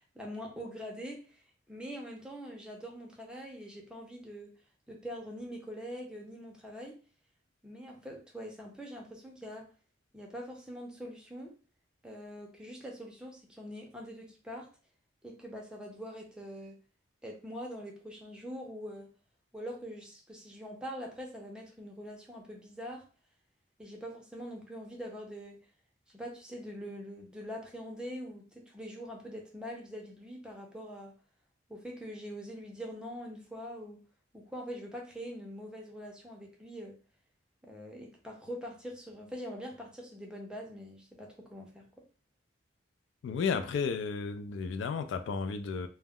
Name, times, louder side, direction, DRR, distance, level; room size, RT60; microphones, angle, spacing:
voice 1, 0.0-4.5 4.9-7.0 7.6-9.7 10.1-11.5 12.0-14.7 15.2-16.8 17.2-19.1 19.5-23.0 23.8-25.6 26.1-31.1 31.7-34.0 34.3-37.0 37.6-41.9, equal, 5° right, 0 dB, 0.5 m, -43 dB
voice 2, 43.2-45.9, left 5 dB, 75° left, 8 dB, 0.3 m, -33 dB
2.2 x 2.0 x 3.5 m, 0.36 s
head